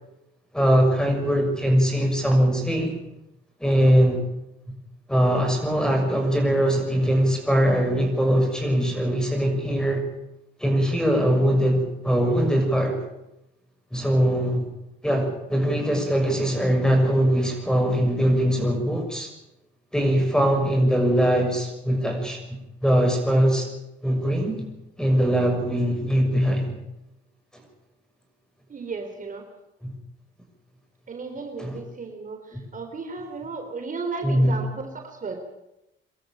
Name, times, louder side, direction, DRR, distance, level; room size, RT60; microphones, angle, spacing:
voice 1, 0.5-2.9 3.6-4.2 5.1-10.1 10.6-13.1 13.9-14.7 15.0-19.3 19.9-23.7 24.0-24.7 25.0-26.8 29.8-29.9 31.6-31.8 32.5-32.6 34.2-34.6, equal, 5° left, 4 dB, 6.4 m, -21 dB
voice 2, 28.7-29.4 31.1-35.4, right 4 dB, 40° right, 4 dB, 3.8 m, -34 dB
24.0 x 13.0 x 9.0 m, 0.90 s
cardioid pair, 90°, 20 cm